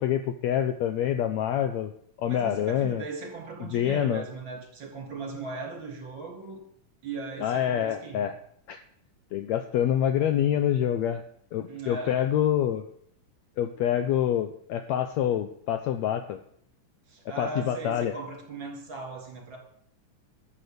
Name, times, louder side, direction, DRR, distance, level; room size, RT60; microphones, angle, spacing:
voice 1, 0.0-1.9 2.2-3.0 3.6-4.2 7.4-8.3 8.7-8.8 9.3-11.2 11.5-12.9 13.6-16.4 17.4-18.1, left 10 dB, 75° left, 9 dB, 1.7 m, -26 dB
voice 2, 2.3-6.6 7.0-8.3 11.7-12.2 17.1-19.6, right 4 dB, 40° right, 1 dB, 3.5 m, -38 dB
13.0 x 7.0 x 7.9 m, 0.66 s
omnidirectional pair, 3.7 m